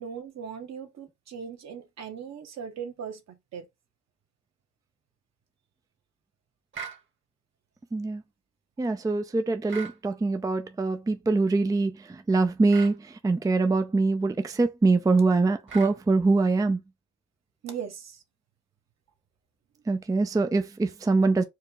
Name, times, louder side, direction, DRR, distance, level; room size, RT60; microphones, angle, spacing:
voice 1, 0.0-3.7 17.6-18.2, right 7 dB, 60° right, 1.4 m, -39 dB
sound 1, 6.7-7.0 9.7-10.0 12.7-13.0 15.7-16.0, right 7 dB, 40° right, 1.4 m, -39 dB
voice 2, 7.9-8.2 8.8-16.8 19.9-21.4, right 3 dB, 10° right, 0.5 m, -24 dB
4.6 x 2.3 x 4.7 m
cardioid pair, 90°, 30 cm